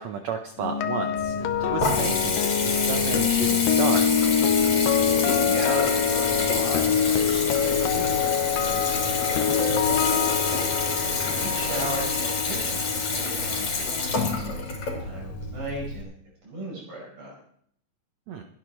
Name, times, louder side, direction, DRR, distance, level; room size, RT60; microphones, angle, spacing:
voice 1, 0.0-4.2 18.3-18.4, right 6 dB, 75° right, 5 dB, 1.6 m, -32 dB
sound 1, 0.6-14.7 14.9-15.2, left 8 dB, 80° left, 2.4 m, -25 dB
Water tap faucet / Bathtub (filling or washing) / Trickle dribble, 1.2-16.0, left 3 dB, 50° left, 4.4 m, -28 dB
voice 2, 5.1-10.4 11.3-14.6 15.0-16.1 16.4-17.3, right 1 dB, 55° right, -5 dB, 6.7 m, -36 dB
sound 2, 5.6-12.1, right 2 dB, 25° right, 2.1 m, -38 dB
27.0 x 10.5 x 3.1 m, 0.65 s
omnidirectional pair, 4.1 m